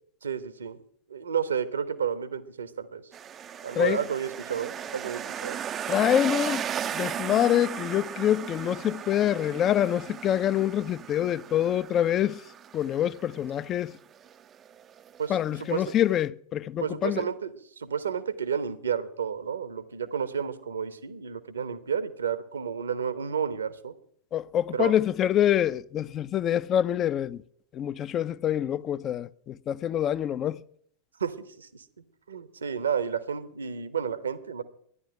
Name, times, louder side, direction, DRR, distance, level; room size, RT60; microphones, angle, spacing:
voice 1, 0.2-0.8 1.1-3.0 3.6-5.6 15.2-15.9 16.8-23.9 24.7-25.0 31.2-31.8 32.3-34.6, right 7 dB, 70° right, 1.1 m, -31 dB
sound 1, 3.1-16.3, right 9 dB, 25° right, 0.5 m, -37 dB
voice 2, 5.9-6.7 6.9-12.4 12.7-13.9 15.3-17.2 24.3-27.4 27.7-30.6, left 11 dB, 30° left, 0.5 m, -26 dB
12.5 x 11.0 x 8.8 m
figure-of-eight pair, 90°, 0 cm